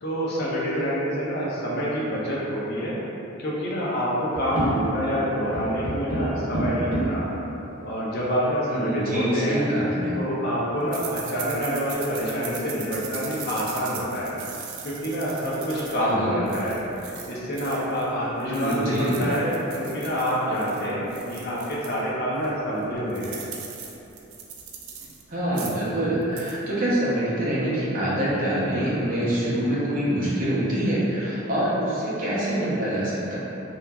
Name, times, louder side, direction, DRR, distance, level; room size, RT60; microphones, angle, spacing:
voice 1, 0.0-3.0 3.4-7.2 7.8-9.7 10.2-14.4 14.8-16.8 17.3-23.4, equal, 50° left, -6 dB, 0.5 m, -27 dB
sound 1, 4.3-5.2 5.5-7.3 8.1-8.2 8.3-8.4 9.1-10.1 11.8-11.9 12.4-12.9 13.3-13.4 13.9-14.8, right 1 dB, 5° left, 1.1 m, -30 dB
voice 2, 8.7-10.2 16.0-16.5 18.4-19.3 25.3-33.4, right 1 dB, 40° right, -9 dB, 0.6 m, -25 dB
sound 2, 10.9-18.1 18.4-22.0 22.4-22.5 22.8-25.2 25.5-25.9 26.2-26.6, right 6 dB, 80° right, 0.3 m, -39 dB
2.9 x 2.3 x 2.2 m, 3.0 s
head